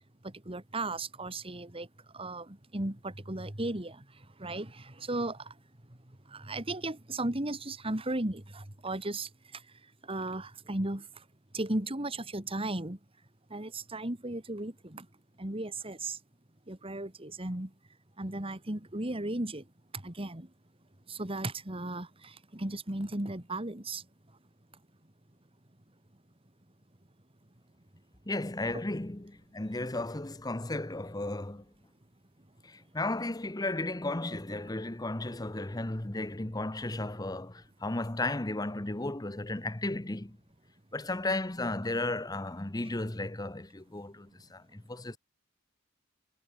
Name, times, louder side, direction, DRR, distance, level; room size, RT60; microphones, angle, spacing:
voice 1, 0.5-1.9 2.1-4.0 4.4-5.4 6.3-9.3 10.1-11.0 11.5-13.0 13.5-15.1 15.4-16.2 16.7-17.7 18.2-19.6 20.0-20.5 21.1-22.1 22.5-24.0, right 2 dB, 30° right, 2.2 m, -35 dB
voice 2, 28.3-31.6 32.6-40.4 40.9-45.2, left 2 dB, 20° left, 1.0 m, -34 dB
head